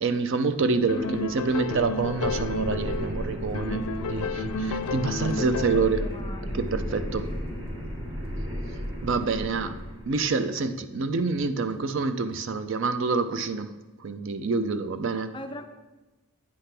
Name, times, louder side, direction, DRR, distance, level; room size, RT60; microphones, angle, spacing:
voice 1, 0.0-6.0 6.5-7.3 9.0-9.8 10.1-13.7 14.0-15.3, right 4 dB, 55° right, 10 dB, 0.4 m, -27 dB
sound 1, 0.8-10.3, equal, 25° right, 1.3 m, -35 dB
sound 2, 0.9-3.2 3.5-6.0, left 3 dB, 85° left, 0.4 m, -31 dB
voice 2, 0.9-1.2 5.6-6.6 7.5-7.7 15.3-15.7, left 1 dB, 20° left, 7 dB, 0.4 m, -39 dB
sound 3, 1.2-1.5 1.8-6.8 7.1-12.4, equal, 40° right, 0.9 m, -54 dB
8.6 x 3.4 x 5.8 m, 1.1 s
head